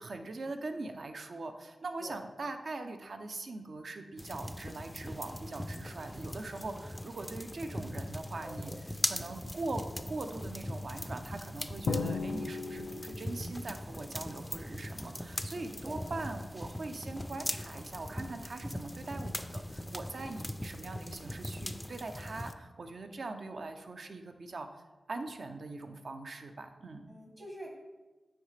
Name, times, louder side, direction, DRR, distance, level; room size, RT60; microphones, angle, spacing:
voice 1, 0.0-24.8 25.1-27.0, right 3 dB, 65° right, 6 dB, 0.5 m, -42 dB
sound 1, 4.2-22.5, left 1 dB, 10° left, 0.3 m, -40 dB
voice 2, 8.4-8.7 15.6-16.0 27.1-27.7, equal, 35° right, -1 dB, 1.1 m, -46 dB
Drum, 11.9-13.6, left 4 dB, 75° left, 0.4 m, -35 dB
9.3 x 3.2 x 3.3 m, 1.2 s
cardioid pair, 60°, 0 cm